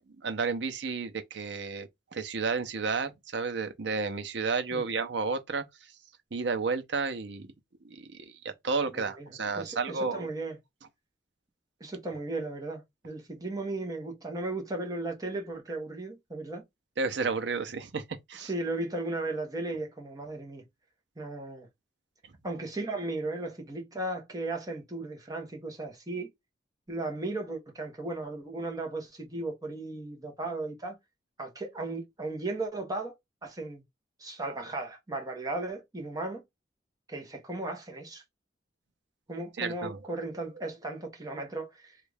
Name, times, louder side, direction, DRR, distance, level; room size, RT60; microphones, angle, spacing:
voice 1, 0.2-5.6 6.3-7.5 7.8-8.3 8.6-10.3 17.0-18.0 18.3-18.5 39.6-40.0, right 4 dB, 70° right, 0.7 m, -31 dB
voice 2, 8.9-9.3 9.6-10.6 11.8-16.6 18.4-20.6 21.2-21.7 22.4-26.3 26.9-31.0 31.4-33.1 33.4-33.8 34.2-36.4 37.1-38.2 39.3-42.0, right 2 dB, 20° right, 1.0 m, -36 dB
3.2 x 2.4 x 3.3 m
head